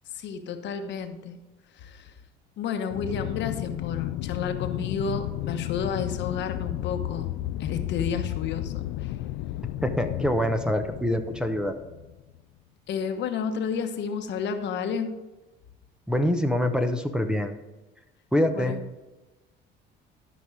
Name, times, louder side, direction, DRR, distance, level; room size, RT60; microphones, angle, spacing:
voice 1, 0.1-1.4 1.8-2.1 2.6-7.3 7.6-9.1 12.9-15.1 18.5-18.8, left 6 dB, 60° left, 7 dB, 1.1 m, -31 dB
Aircraft, 2.9-12.4, left 14 dB, 85° left, 0.4 m, -33 dB
voice 2, 9.8-11.8 16.1-17.5 18.3-18.8, left 1 dB, 5° right, 7 dB, 0.8 m, -25 dB
12.5 x 5.3 x 4.9 m, 1.1 s
cardioid pair, 100°, 20 cm